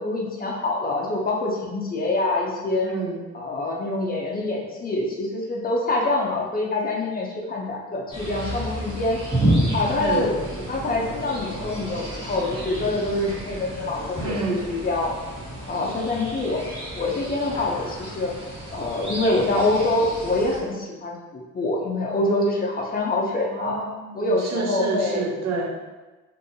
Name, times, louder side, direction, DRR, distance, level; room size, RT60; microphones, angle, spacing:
voice 1, 0.0-2.9 3.3-9.2 9.7-10.4 10.7-15.1 15.7-16.6 17.0-18.3 18.7-23.8 24.1-25.2, left 2 dB, 30° left, -1 dB, 0.5 m, -25 dB
voice 2, 2.8-3.2 10.0-10.3 14.2-14.7 23.5-25.7, right 3 dB, 60° right, 1 dB, 0.6 m, -28 dB
sound 1, 8.1-20.6, right 1 dB, 20° right, 1.1 m, -30 dB
2.6 x 2.5 x 2.6 m, 1.2 s
cardioid pair, 90°, 30 cm